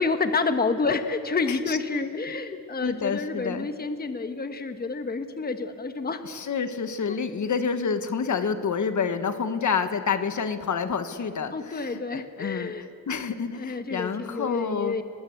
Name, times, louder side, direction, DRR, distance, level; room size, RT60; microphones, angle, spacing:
voice 1, 0.0-6.2 7.1-7.2 11.5-12.9 13.6-15.0, left 4 dB, 25° left, 8 dB, 1.3 m, -29 dB
voice 2, 2.8-3.7 6.2-12.7 13.1-14.9, left 6 dB, 55° left, 9 dB, 1.5 m, -28 dB
30.0 x 20.0 x 8.1 m, 2.5 s
wide cardioid pair, 125°, 35 cm